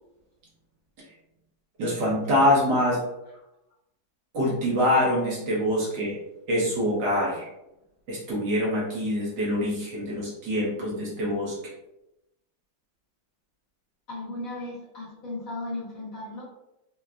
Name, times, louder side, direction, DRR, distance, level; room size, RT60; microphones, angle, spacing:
voice 1, 1.8-3.0 4.3-6.2 6.5-7.5 8.1-11.7, left 1 dB, 65° right, -5 dB, 1.4 m, -25 dB
voice 2, 14.1-16.4, left 2 dB, 55° left, -7 dB, 1.1 m, -36 dB
3.8 x 2.2 x 2.2 m, 0.89 s
omnidirectional pair, 2.2 m